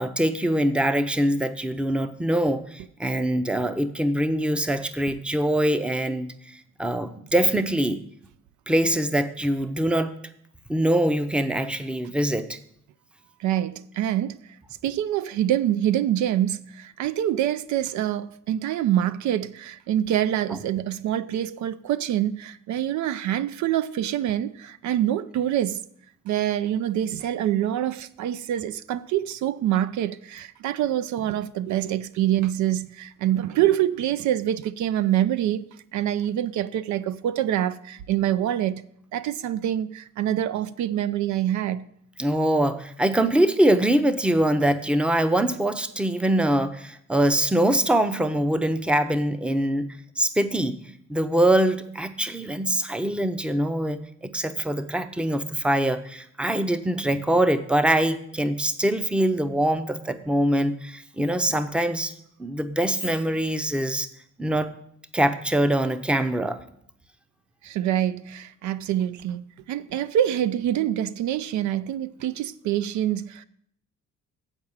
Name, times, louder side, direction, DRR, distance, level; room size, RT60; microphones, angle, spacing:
voice 1, 0.0-6.3 6.8-8.0 8.7-10.1 10.7-12.6 42.2-50.8 51.1-62.1 62.4-64.1 64.4-64.7 65.1-66.6, right 1 dB, 5° right, 0.6 m, -23 dB
voice 2, 13.4-14.4 14.8-25.8 26.3-35.7 35.9-38.8 39.1-41.9 67.6-73.4, right 11 dB, 70° right, 0.4 m, -25 dB
8.1 x 4.8 x 7.1 m
cardioid pair, 90°, 30 cm